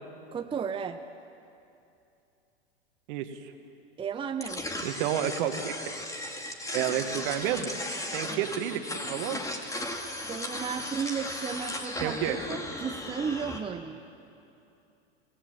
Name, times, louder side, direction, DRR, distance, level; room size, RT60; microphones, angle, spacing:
voice 1, 0.3-1.0 4.0-4.7 8.2-8.5 10.3-14.0, right 6 dB, 15° right, 7 dB, 0.8 m, -34 dB
voice 2, 3.1-3.5 4.8-5.7 6.7-7.7 8.1-8.8 9.1-9.4 12.0-12.4, right 11 dB, 55° right, 7 dB, 1.9 m, -30 dB
sound 1, 4.4-13.6, left 1 dB, 10° left, 2.3 m, -36 dB
27.0 x 18.0 x 7.8 m, 2.7 s
hypercardioid pair, 95°, 32 cm